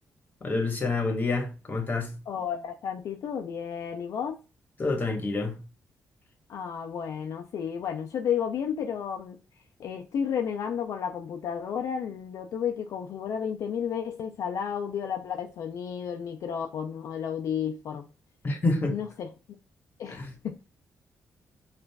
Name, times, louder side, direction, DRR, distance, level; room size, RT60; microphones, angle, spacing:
voice 1, 0.4-2.1 4.8-5.6 18.4-18.9 20.1-20.3, left 3 dB, 35° left, 1.2 m, -28 dB
voice 2, 2.3-4.4 6.5-9.4 9.8-18.1 18.9-19.3 20.0-20.6, left 8 dB, 70° left, 0.4 m, -32 dB
5.1 x 2.5 x 2.2 m
cardioid pair, 110°, 6 cm